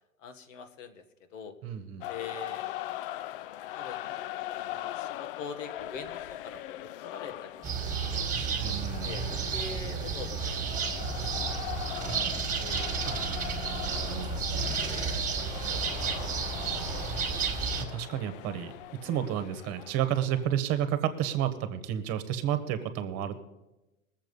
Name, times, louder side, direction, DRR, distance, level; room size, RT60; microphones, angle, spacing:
voice 1, 0.2-1.6 2.1-2.7 3.7-4.2 4.5-12.3 12.6-12.9 14.8-15.5 15.7-16.7 17.1-17.3 19.3-19.4, left 5 dB, 65° left, 7 dB, 1.7 m, -45 dB
voice 2, 1.6-2.0 8.6-9.1 13.0-14.4 17.8-18.7 19.0-23.4, right 10 dB, 35° right, 10 dB, 1.4 m, -31 dB
sound 1, 2.0-20.5, left 14 dB, 45° left, 0.4 m, -41 dB
sound 2, 7.6-17.8, right 5 dB, 20° right, 2.0 m, -32 dB
19.5 x 7.6 x 5.4 m, 0.99 s
hypercardioid pair, 120°, 41 cm